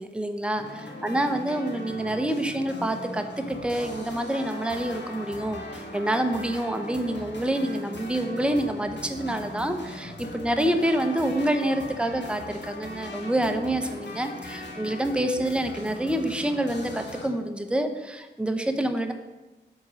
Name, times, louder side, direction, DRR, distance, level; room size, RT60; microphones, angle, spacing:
voice 1, 0.0-19.1, right 1 dB, 5° right, 6 dB, 0.7 m, -27 dB
sound 1, 0.6-17.3, left 1 dB, 75° left, 1.4 m, -39 dB
8.1 x 3.7 x 6.2 m, 1.1 s
cardioid pair, 55°, 18 cm